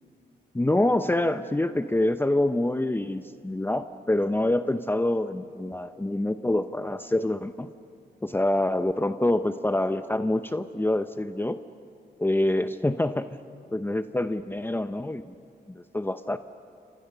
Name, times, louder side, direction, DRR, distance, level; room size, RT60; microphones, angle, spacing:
voice 1, 0.5-7.7 8.2-11.6 12.2-13.3 13.7-15.2 15.7-16.4, left 1 dB, 10° left, 10 dB, 0.8 m, -26 dB
29.5 x 26.5 x 6.8 m, 2.3 s
cardioid pair, 75°, 18 cm